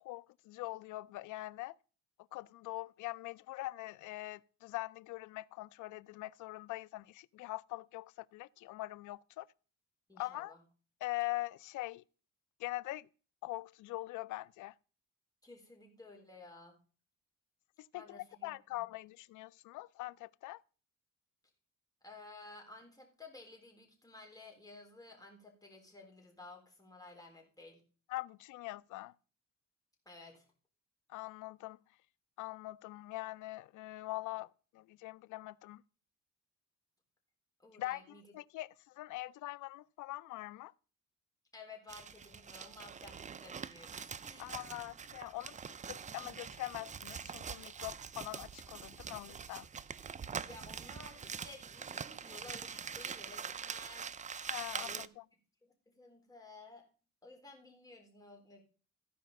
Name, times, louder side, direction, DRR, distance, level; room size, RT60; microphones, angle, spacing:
voice 1, 0.0-1.7 2.3-9.5 10.2-10.5 11.0-12.0 12.6-13.1 13.4-14.7 17.8-20.6 28.1-29.1 31.1-31.8 32.4-35.8 37.8-40.7 44.4-49.7 54.5-55.2, left 18 dB, 80° left, 0.4 m, -43 dB
voice 2, 10.1-10.6 15.4-16.8 17.9-18.9 22.0-27.8 30.1-30.5 37.6-38.2 41.5-44.6 50.4-54.1 54.8-55.1 55.6-56.9 57.2-58.6, left 3 dB, 10° left, 3.7 m, -54 dB
sound 1, 41.9-55.1, right 6 dB, 25° right, 0.4 m, -44 dB
14.5 x 5.0 x 5.3 m
cardioid pair, 90°, 30 cm